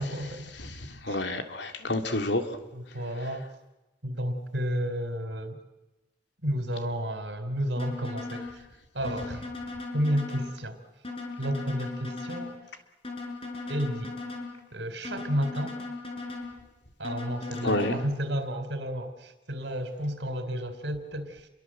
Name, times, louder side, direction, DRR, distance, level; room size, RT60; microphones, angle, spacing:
voice 1, 0.0-0.5 1.1-1.3 2.7-3.5 4.0-5.6 6.4-8.4 8.9-9.5 9.9-10.8 11.4-12.6 13.7-14.1 14.7-15.8 17.0-21.5, equal, 75° right, 9 dB, 4.0 m, -31 dB
voice 2, 0.6-2.5 17.6-18.0, left 2 dB, 70° left, 6 dB, 2.9 m, -29 dB
sound 1, 7.8-8.5 9.0-10.5 11.0-12.5 13.0-14.5 15.0-16.5 17.0-18.0, left 3 dB, 30° left, 6.8 m, -37 dB
30.0 x 23.5 x 7.8 m, 1.0 s
head